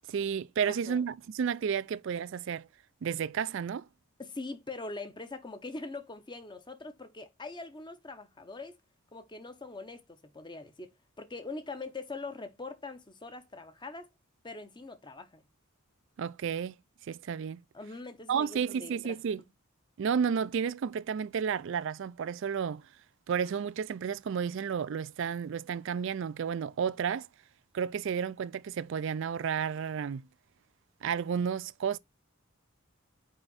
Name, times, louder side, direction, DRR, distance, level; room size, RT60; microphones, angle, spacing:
voice 1, 0.1-2.7 3.0-3.9 16.2-16.8 17.0-17.6 18.3-19.4 20.0-22.9 23.3-27.3 27.7-30.3 31.0-32.0, right 7 dB, 60° right, 0.3 m, -32 dB
voice 2, 0.7-1.0 4.2-8.8 9.1-14.1 14.4-15.4 17.7-19.2, left 3 dB, 20° left, 0.8 m, -43 dB
5.6 x 4.5 x 4.0 m
head